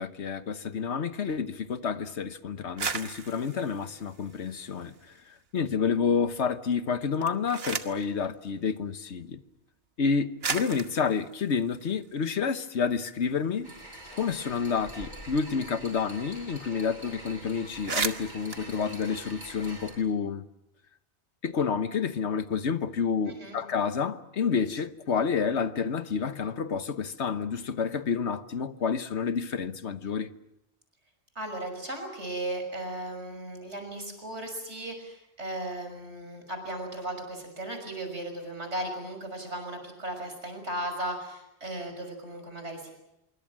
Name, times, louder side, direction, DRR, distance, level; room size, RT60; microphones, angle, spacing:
voice 1, 0.0-4.9 5.5-9.4 10.0-13.7 14.1-20.4 21.4-30.3, left 6 dB, 90° left, 1.4 m, -29 dB
sound 1, 2.6-5.2 5.6-6.2 7.0-8.1 9.2-9.3 10.0-10.1 10.4-12.7 13.1-13.2 13.4-16.1 16.3-16.4 16.7-17.0 17.3-17.4 17.7-19.9, right 5 dB, 65° right, 1.5 m, -37 dB
sound 2, 13.6-19.9, right 1 dB, 40° right, 7.8 m, -45 dB
voice 2, 23.3-23.6 31.3-42.9, right 1 dB, 85° right, 6.4 m, -36 dB
25.5 x 23.5 x 7.5 m
omnidirectional pair, 1.1 m